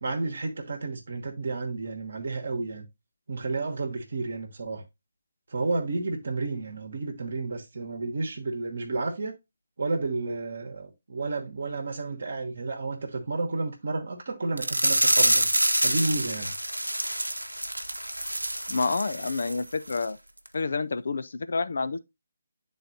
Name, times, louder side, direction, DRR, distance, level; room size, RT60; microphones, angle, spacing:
voice 1, 0.0-2.8 3.3-4.8 5.5-9.3 9.8-15.5 15.8-16.5, right 3 dB, 55° right, 1.1 m, -31 dB
sound 1, 14.6-19.6 19.9-20.1 20.5-20.6, right 1 dB, 85° right, 0.8 m, -26 dB
voice 2, 18.7-20.2 20.5-22.0, left 4 dB, 55° left, 0.4 m, -28 dB
9.9 x 3.9 x 2.6 m
figure-of-eight pair, 150°, 0 cm